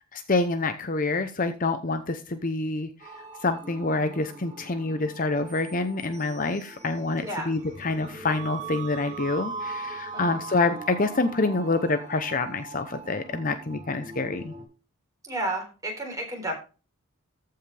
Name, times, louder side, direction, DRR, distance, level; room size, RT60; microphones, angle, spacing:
voice 1, 0.1-2.9 3.4-14.5, left 3 dB, 40° left, 9 dB, 0.7 m, -27 dB
sound 1, 3.0-14.6, right 4 dB, 30° right, 3.1 m, -40 dB
voice 2, 7.2-7.5 10.1-10.4 15.2-16.5, right 1 dB, 15° right, 1 dB, 3.8 m, -32 dB
14.5 x 5.7 x 3.3 m, 0.32 s
head